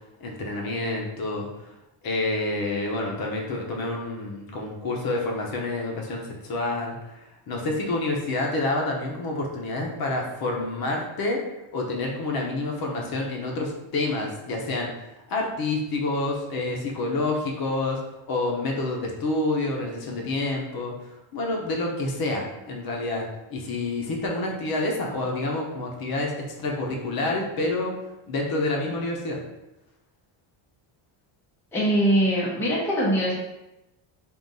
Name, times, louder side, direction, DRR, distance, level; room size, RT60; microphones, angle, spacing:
voice 1, 0.2-1.5 2.0-7.0 7.5-11.4 11.7-14.9 15.3-18.0 18.3-20.9 21.3-23.2 23.5-27.9 28.3-29.4, left 2 dB, 45° left, 0 dB, 0.8 m, -28 dB
voice 2, 31.7-33.3, right 1 dB, 5° left, -5 dB, 0.5 m, -22 dB
3.7 x 2.5 x 3.9 m, 0.95 s
cardioid pair, 165°, 50 cm